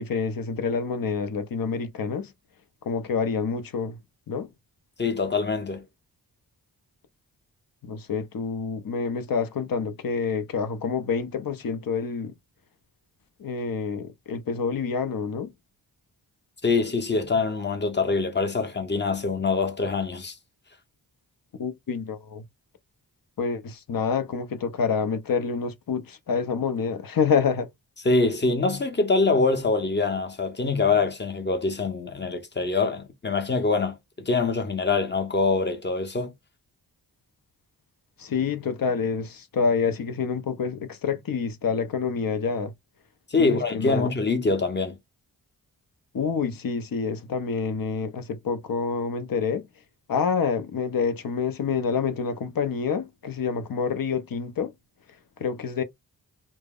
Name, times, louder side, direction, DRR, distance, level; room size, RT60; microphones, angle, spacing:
voice 1, 0.0-2.3 2.8-4.0 4.3-4.5 7.8-12.3 13.4-15.5 21.6-22.4 23.4-27.7 38.2-42.7 43.4-44.1 46.1-49.7 50.1-54.7 55.4-55.8, left 5 dB, 60° left, 0.7 m, -27 dB
voice 2, 5.0-5.8 16.6-20.4 28.0-36.3 43.3-45.0, left 3 dB, 25° left, 0.8 m, -24 dB
2.0 x 2.0 x 3.5 m
cardioid pair, 55°, 40 cm